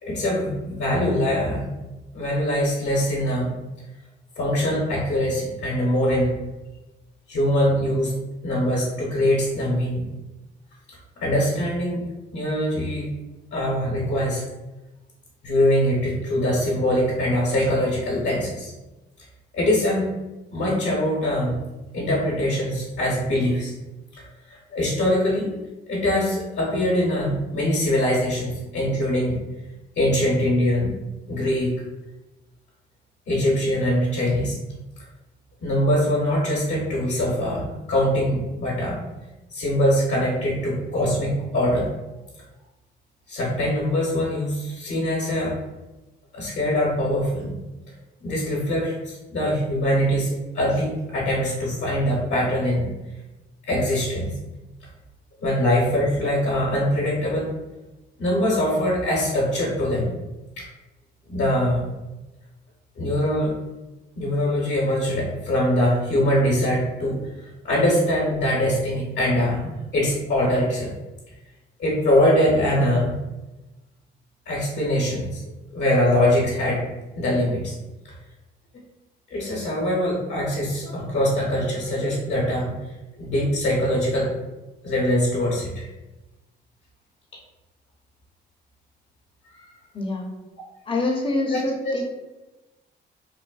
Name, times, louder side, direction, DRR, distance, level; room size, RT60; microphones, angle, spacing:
voice 1, 0.0-1.6 2.1-3.5 4.4-6.4 7.3-8.2 8.4-10.0 11.2-12.0 12.3-13.1 13.5-14.4 15.4-18.7 19.5-20.0 20.5-21.6 21.9-23.7 24.7-25.5 25.9-29.4 30.0-30.9 31.3-31.7 33.3-34.6 35.6-39.0 39.5-41.9 43.3-45.5 46.3-47.5 48.2-52.9 53.7-54.4 55.4-57.5 58.2-60.1 60.6-60.7 61.3-61.8 63.0-63.5 64.2-67.2 67.6-70.9 71.8-73.1 74.5-75.4 75.7-76.8 77.2-77.7 79.3-82.7 83.1-84.3 84.8-85.9 89.6-89.7 91.5-92.0, left 1 dB, 65° left, -5 dB, 0.9 m, -23 dB
voice 2, 89.9-90.2 90.9-92.0, left 2 dB, 25° left, 0 dB, 0.7 m, -25 dB
3.2 x 2.1 x 2.3 m, 1.1 s
cardioid pair, 90°, 20 cm